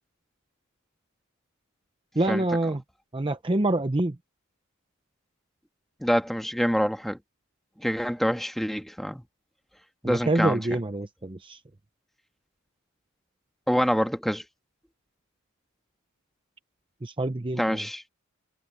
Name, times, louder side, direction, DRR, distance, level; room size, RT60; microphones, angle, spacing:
voice 1, 2.2-2.8 3.1-4.2 10.0-11.6 17.0-17.8, right 2 dB, 25° right, 0.7 m, -26 dB
voice 2, 6.0-7.2 7.8-9.2 10.0-10.8 13.7-14.4 17.5-18.0, equal, ahead, 1.6 m, -26 dB
head